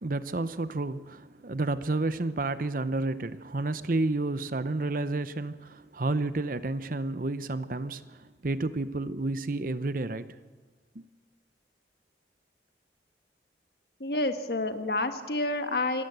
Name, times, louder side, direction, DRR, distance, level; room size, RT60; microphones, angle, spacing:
voice 1, 0.0-10.4 11.0-11.1, right 2 dB, 50° right, 0.8 m, -31 dB
voice 2, 14.0-16.0, left 2 dB, 60° left, 1.5 m, -29 dB
25.5 x 14.5 x 8.1 m
head